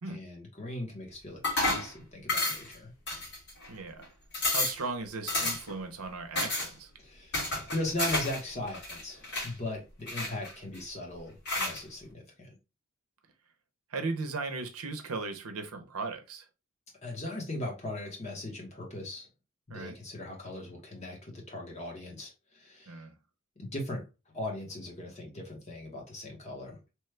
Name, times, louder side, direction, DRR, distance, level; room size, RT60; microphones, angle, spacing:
voice 1, 0.1-2.9 7.0-12.6 17.0-19.3 19.7-23.0 23.6-24.1 24.3-26.8, left 1 dB, 30° left, 1.0 m, -39 dB
sound 1, 1.4-1.9 2.3-2.7 3.1-3.7 4.0-4.1 4.3-4.8 5.3-5.8 6.4-6.7 7.3-8.4 8.7-9.5 10.1-10.8 11.5-11.8, left 2 dB, 50° left, 1.5 m, -31 dB
voice 2, 3.7-4.1 4.5-6.9 13.9-16.4 19.7-20.0 22.9-23.1, right 3 dB, 85° right, 0.6 m, -37 dB
3.1 x 2.2 x 3.1 m
head